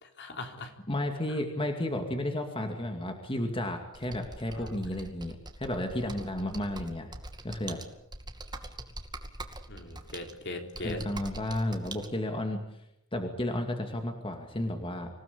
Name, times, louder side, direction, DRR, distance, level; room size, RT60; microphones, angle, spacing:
voice 1, 0.0-0.7 4.5-4.7 9.7-11.1, left 2 dB, 55° left, 4 dB, 3.8 m, -40 dB
voice 2, 0.9-7.1 7.4-7.8 10.8-12.6 13.1-15.1, left 1 dB, 25° left, 4 dB, 2.4 m, -32 dB
Computer keyboard, 3.9-12.1, right 2 dB, 20° right, 2.4 m, -44 dB
26.5 x 17.0 x 8.6 m, 0.82 s
head